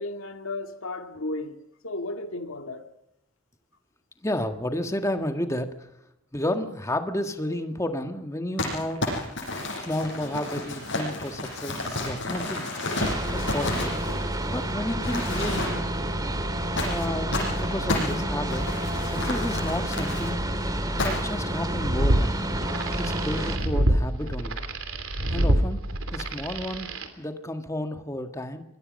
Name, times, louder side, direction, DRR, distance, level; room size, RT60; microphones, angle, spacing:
voice 1, 0.0-2.9, left 2 dB, 80° left, 2.1 m, -34 dB
voice 2, 4.2-5.9 6.3-9.0 9.7-12.7 13.3-15.8 16.8-18.7 19.1-20.4 21.0-22.3 23.0-24.6 25.3-25.8 26.1-26.9 27.2-28.6, left 1 dB, 15° left, 1.6 m, -31 dB
Crumpling crinkling, 8.6-14.6 15.0-16.0 16.8-20.3 21.0-21.4, left 2 dB, 55° left, 7.6 m, -31 dB
sound 1, 13.0-23.6, right 1 dB, 20° right, 2.1 m, -29 dB
sound 2, 21.6-27.1, right 1 dB, 85° right, 2.9 m, -26 dB
26.0 x 21.5 x 5.4 m
head